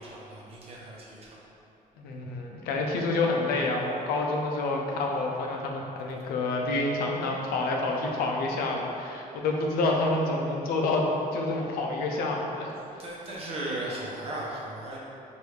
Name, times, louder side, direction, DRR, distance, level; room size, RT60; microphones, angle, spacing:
voice 1, 0.0-1.4 13.0-15.0, right 1 dB, 40° right, -4 dB, 0.8 m, -36 dB
voice 2, 2.0-12.7, left 2 dB, 85° left, 0 dB, 0.5 m, -28 dB
4.7 x 2.6 x 3.2 m, 2.7 s
cardioid pair, 150°, 15 cm